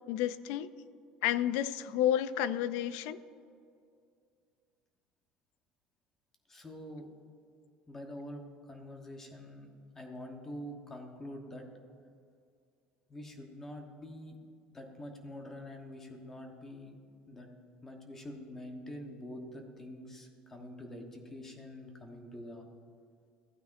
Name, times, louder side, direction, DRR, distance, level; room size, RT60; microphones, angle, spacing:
voice 1, 0.1-0.7 1.2-3.2, left 11 dB, 75° left, 15 dB, 0.4 m, -30 dB
voice 2, 6.5-7.1 7.9-11.7 13.1-14.4 14.7-17.0 17.3-17.5 17.8-22.7, left 1 dB, 15° left, 3 dB, 1.1 m, -46 dB
15.0 x 9.0 x 2.6 m, 2.3 s
cardioid pair, 160°, 3 cm